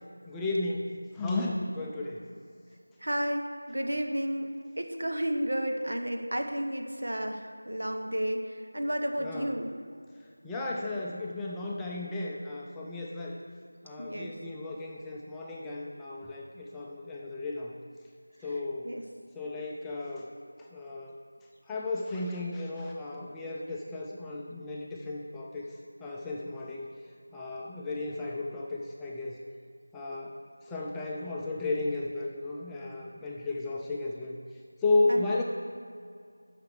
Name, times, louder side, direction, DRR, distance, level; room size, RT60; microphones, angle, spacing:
voice 1, 0.3-2.2 9.2-9.5 10.4-13.4 13.8-17.7 18.4-18.9 19.3-20.3 20.6-21.2 21.7-25.7 26.0-26.9 27.3-29.4 29.9-30.4 30.6-34.4 34.8-35.4, left 2 dB, 5° left, -4 dB, 0.5 m, -33 dB
voice 2, 3.0-4.5 4.8-9.7 14.0-14.3 18.8-19.0 35.1-35.3, equal, 80° right, 4 dB, 1.4 m, -32 dB
9.2 x 5.9 x 6.6 m, 2.3 s
figure-of-eight pair, 175°, 0 cm